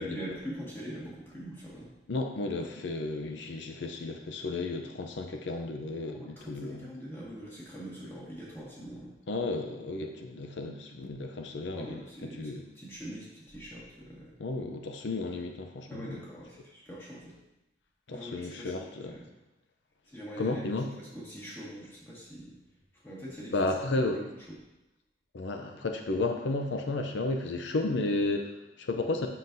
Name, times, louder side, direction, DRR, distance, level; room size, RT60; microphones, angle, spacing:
voice 1, 0.0-1.9 6.2-9.1 11.7-14.3 15.9-17.4 18.1-19.2 20.1-20.6 21.1-22.6 23.0-23.5 24.1-24.2, equal, 15° left, -7 dB, 1.7 m, -43 dB
voice 2, 2.1-6.9 9.3-12.6 14.4-16.2 18.1-19.2 20.4-20.9 23.5-24.2 25.3-29.3, left 2 dB, 85° left, 4 dB, 0.5 m, -33 dB
7.4 x 5.9 x 2.6 m, 0.95 s
head